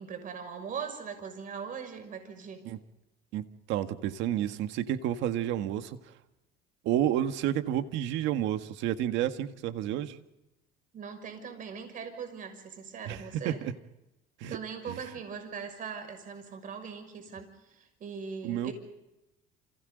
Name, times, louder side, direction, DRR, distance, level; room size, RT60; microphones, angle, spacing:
voice 1, 0.0-2.6 10.9-13.6 14.5-18.7, right 6 dB, 45° right, 7 dB, 6.3 m, -40 dB
voice 2, 3.3-6.0 6.8-10.2 13.1-13.7 14.4-14.6 14.9-15.0 18.4-18.7, right 11 dB, 75° right, 9 dB, 1.7 m, -30 dB
29.0 x 28.5 x 4.0 m, 0.95 s
cardioid pair, 125°, 19 cm